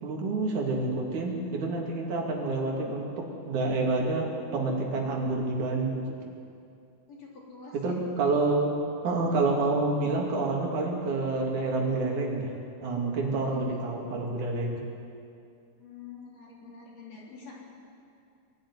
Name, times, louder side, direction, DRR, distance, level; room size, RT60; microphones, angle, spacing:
voice 1, 0.0-6.0 7.7-8.8 9.0-12.5 12.8-14.8, right 3 dB, 85° right, 0 dB, 4.1 m, -28 dB
voice 2, 7.1-7.9 13.3-13.9 15.8-17.5, left 5 dB, 55° left, -3 dB, 4.9 m, -47 dB
21.5 x 12.0 x 9.9 m, 2.5 s
omnidirectional pair, 3.4 m